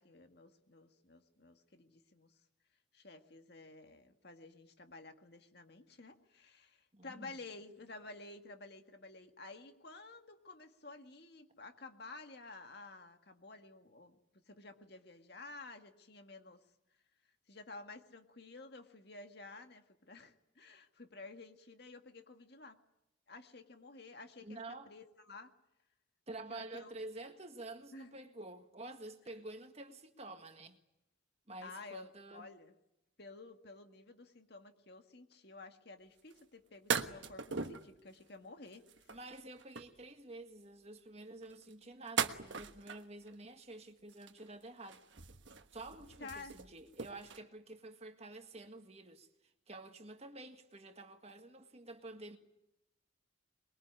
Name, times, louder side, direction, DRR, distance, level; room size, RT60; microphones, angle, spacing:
voice 1, 0.0-2.3 2.9-14.2 14.5-16.6 17.5-22.8 23.3-24.6 24.9-25.5 26.5-26.9 27.9-28.1 31.6-32.7 33.2-38.9 46.2-46.6, left 3 dB, 55° left, 1.9 m, -52 dB
voice 2, 6.9-7.3 24.4-24.9 26.3-30.8 31.5-32.5 39.1-45.0 45.7-49.3 49.7-52.4, right 2 dB, 30° right, 1.7 m, -49 dB
sound 1, 36.3-36.4 36.9-37.9 38.7-40.0 41.4-43.3 44.1-44.6 44.9-47.4, right 6 dB, 70° right, 1.3 m, -39 dB
23.5 x 22.0 x 9.7 m
head